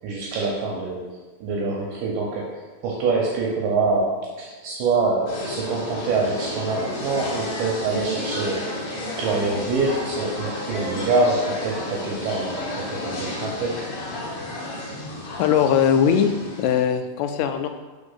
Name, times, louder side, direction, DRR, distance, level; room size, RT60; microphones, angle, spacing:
voice 1, 0.0-8.7 9.2-13.9, right 3 dB, 75° right, -2 dB, 2.0 m, -25 dB
sound 1, 5.3-16.8, left 1 dB, 65° left, 2.3 m, -32 dB
voice 2, 15.4-16.3 16.6-17.7, left 8 dB, 90° left, 8 dB, 2.6 m, -20 dB
5.8 x 3.5 x 5.5 m, 1.3 s
omnidirectional pair, 4.6 m